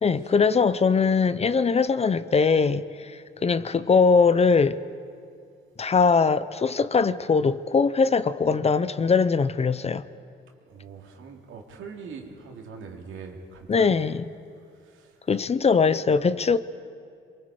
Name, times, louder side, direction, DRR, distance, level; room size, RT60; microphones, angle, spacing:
voice 1, 0.0-3.1 3.4-4.8 5.8-10.0 13.7-14.2 15.3-16.6, left 5 dB, 30° left, 0.7 m, -21 dB
voice 2, 10.7-14.0 14.8-15.2, right 5 dB, 80° right, 2.6 m, -42 dB
27.0 x 23.0 x 4.9 m
cardioid pair, 90°, 20 cm